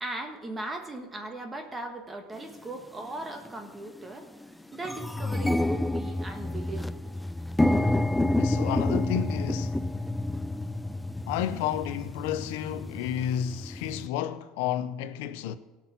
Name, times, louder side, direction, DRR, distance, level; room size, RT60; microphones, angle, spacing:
voice 1, 0.0-4.3 4.7-6.9, right 2 dB, 20° right, 1.4 m, -38 dB
sound 1, 2.5-2.6 3.4-3.6 4.0-4.1 4.4-14.1, left 1 dB, 5° left, 0.4 m, -29 dB
voice 2, 8.4-9.8 11.3-15.6, left 10 dB, 80° left, 0.6 m, -31 dB
17.0 x 6.0 x 5.8 m
supercardioid pair, 100°, 0 cm